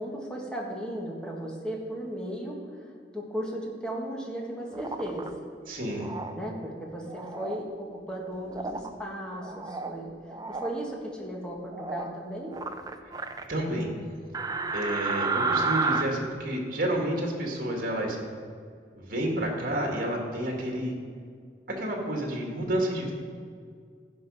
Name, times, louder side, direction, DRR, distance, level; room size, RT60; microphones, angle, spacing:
voice 1, 0.0-5.3 6.3-10.1 10.5-12.6 15.4-15.7, right 1 dB, 5° left, -2 dB, 1.7 m, -36 dB
sound 1, 4.7-5.3 6.0-6.3 7.1-7.6 8.5-8.9 9.4-10.0 10.3-10.7 11.7-12.1 12.5-13.4 14.3-16.0, right 4 dB, 20° right, 0.5 m, -31 dB
voice 2, 5.7-6.1 13.5-13.9 14.7-18.2 19.0-20.9 21.7-23.1, right 1 dB, 55° right, 0 dB, 1.9 m, -30 dB
16.0 x 5.3 x 5.4 m, 2.1 s
head